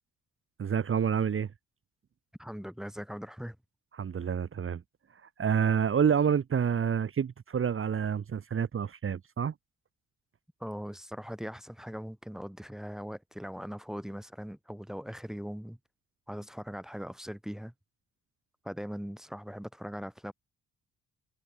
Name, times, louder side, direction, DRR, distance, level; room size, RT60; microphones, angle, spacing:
voice 1, 0.6-1.5 3.9-4.8 5.4-9.5, right 7 dB, 45° right, 1.9 m, -28 dB
voice 2, 2.4-3.6 10.6-15.8 16.3-17.7 18.6-20.3, equal, ahead, 3.9 m, -40 dB
cardioid pair, 90°, 30 cm